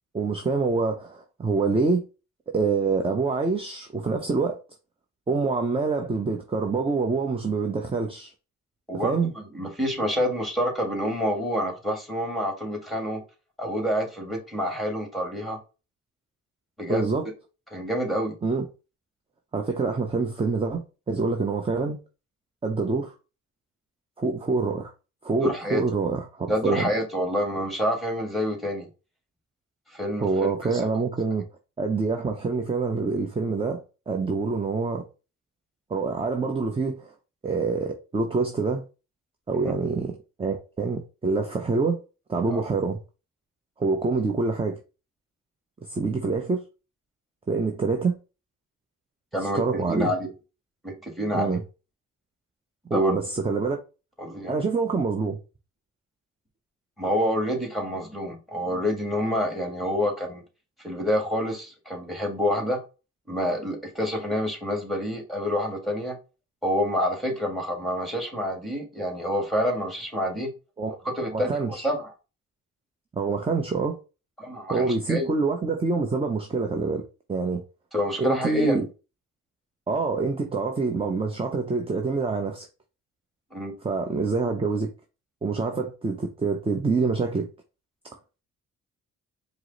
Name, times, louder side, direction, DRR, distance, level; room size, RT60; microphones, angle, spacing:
voice 1, 0.1-2.1 2.5-4.6 5.3-8.3 9.0-9.3 16.9-17.3 18.4-18.7 19.5-22.0 22.6-23.1 24.2-24.9 25.2-26.9 30.2-31.5 31.8-35.1 35.9-37.1 37.4-38.8 39.5-42.0 42.3-43.0 43.8-44.8 45.9-46.6 47.5-48.2 49.4-50.1 51.3-51.6 52.9-53.8 54.5-55.4 70.8-71.9 73.1-74.0 74.7-77.0 77.3-77.6 78.2-78.9 79.9-82.7 83.8-84.9 85.4-87.5, right 4 dB, 20° right, 0.6 m, -26 dB
voice 2, 8.9-13.2 13.6-15.6 16.8-17.1 17.7-18.4 25.4-25.8 26.5-28.9 29.9-30.8 39.6-39.7 42.5-42.6 49.3-49.6 49.9-50.3 50.8-51.6 52.9-53.2 54.2-54.6 57.0-60.4 60.8-62.8 63.3-66.2 66.6-70.5 71.0-72.1 74.4-75.3 77.9-78.9 83.5-83.8, equal, ahead, 1.7 m, -28 dB
4.7 x 2.0 x 3.9 m
cardioid pair, 90°, 30 cm